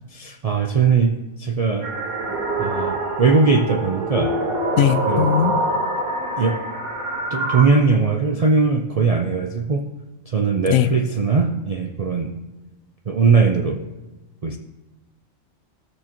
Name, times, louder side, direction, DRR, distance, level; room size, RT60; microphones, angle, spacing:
voice 1, 0.1-1.9 2.6-4.3 5.1-5.4 6.4-6.6 7.3-9.9 10.3-12.4 13.1-13.8 14.4-14.6, right 4 dB, 60° right, 3 dB, 0.4 m, -20 dB
sound 1, 1.8-7.6, right 2 dB, 35° right, 1.3 m, -25 dB
voice 2, 4.8-5.7 10.7-10.9, left 10 dB, 85° left, 12 dB, 1.0 m, -19 dB
16.0 x 6.5 x 2.9 m, 1.1 s
omnidirectional pair, 1.4 m